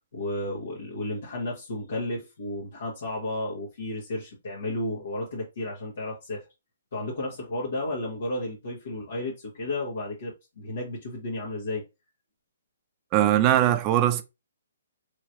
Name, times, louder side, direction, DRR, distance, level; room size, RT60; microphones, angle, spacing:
voice 1, 0.1-6.4 6.9-11.8, left 1 dB, 70° left, 1.3 m, -33 dB
voice 2, 13.1-14.2, right 12 dB, 30° right, 0.4 m, -20 dB
3.2 x 3.0 x 2.7 m
hypercardioid pair, 145°, 0 cm